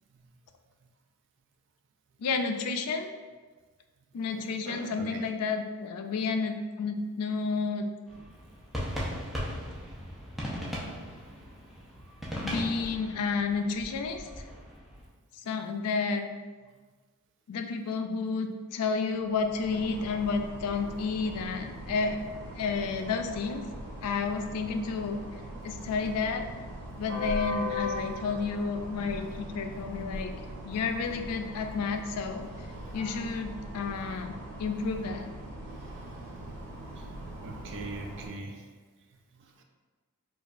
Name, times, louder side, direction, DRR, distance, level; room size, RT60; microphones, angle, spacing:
voice 1, 2.2-3.1 4.1-7.8 12.4-14.4 15.4-16.3 17.5-22.2 22.6-23.6 24.0-25.2 25.6-26.4 27.0-30.3 30.6-32.5 32.9-35.3, left 4 dB, 85° left, 6 dB, 0.4 m, -31 dB
voice 2, 4.7-5.2 37.4-38.6, right 2 dB, 55° right, 3 dB, 0.4 m, -40 dB
sound 1, 8.1-15.1, equal, ahead, 0.6 m, -38 dB
sound 2, 19.2-38.3, equal, 80° right, 0.8 m, -40 dB
4.7 x 2.4 x 2.5 m, 1.4 s
head